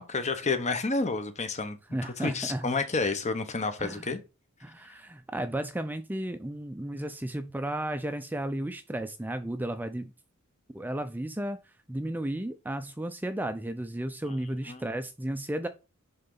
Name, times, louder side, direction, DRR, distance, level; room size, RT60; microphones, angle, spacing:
voice 1, 0.0-1.8 2.0-4.2 14.7-14.8, left 3 dB, 35° left, 1.0 m, -30 dB
voice 2, 1.9-2.7 3.8-4.1 4.6-10.1 10.7-15.7, right 1 dB, 10° right, 0.4 m, -34 dB
10.5 x 3.9 x 3.9 m
head